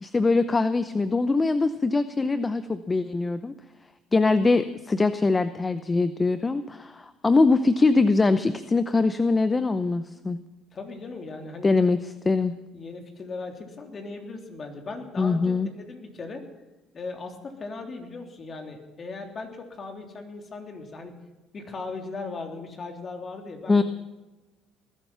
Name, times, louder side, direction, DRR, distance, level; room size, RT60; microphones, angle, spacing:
voice 1, 0.0-3.5 4.1-10.4 11.6-12.5 15.2-15.7 23.7-23.8, left 3 dB, 25° left, 13 dB, 0.7 m, -22 dB
voice 2, 10.7-11.7 12.7-16.4 16.9-21.1 21.5-23.8, left 3 dB, 40° left, 4 dB, 3.4 m, -38 dB
20.0 x 12.0 x 5.7 m, 1.1 s
supercardioid pair, 75°, 0 cm